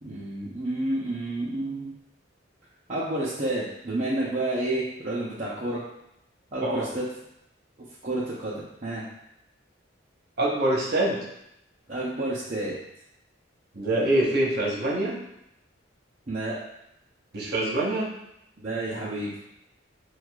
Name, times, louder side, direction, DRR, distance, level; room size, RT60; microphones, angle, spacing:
voice 1, 0.0-1.9 2.9-5.8 6.5-7.0 8.0-9.0 11.9-12.8 16.3-16.6 18.6-19.3, right 1 dB, 40° right, -8 dB, 0.7 m, -30 dB
voice 2, 10.4-11.3 13.7-15.2 17.3-18.1, right 1 dB, 55° right, -4 dB, 1.0 m, -25 dB
6.3 x 2.3 x 2.3 m, 0.81 s
head